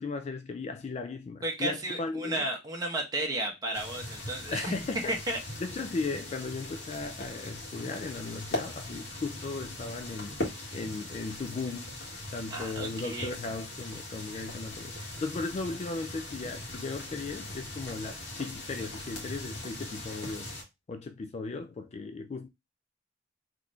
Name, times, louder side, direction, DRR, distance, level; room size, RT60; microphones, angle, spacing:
voice 1, 0.0-2.5 4.5-5.2 5.6-10.3 10.7-11.9 12.3-20.5 20.9-22.5, left 3 dB, 35° left, 0.3 m, -36 dB
voice 2, 1.4-4.7 5.1-5.4 12.5-13.3, right 1 dB, 20° right, 1.0 m, -33 dB
sound 1, 3.7-20.6, left 1 dB, 55° left, 1.6 m, -40 dB
3.9 x 3.1 x 2.6 m
head